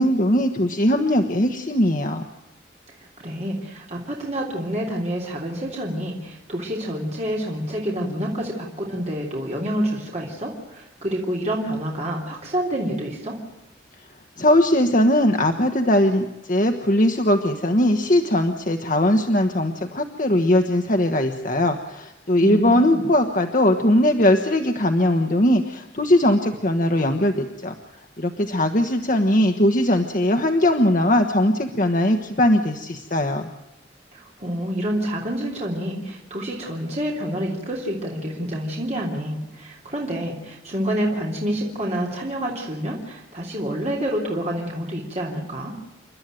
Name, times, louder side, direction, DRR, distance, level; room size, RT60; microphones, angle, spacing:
voice 1, 0.0-2.2 14.4-27.7 28.2-33.5, left 1 dB, 45° left, 5 dB, 1.2 m, -20 dB
voice 2, 3.2-13.4 22.4-23.0 34.1-45.7, equal, 35° right, -2 dB, 3.5 m, -28 dB
29.5 x 12.5 x 9.1 m, 0.93 s
head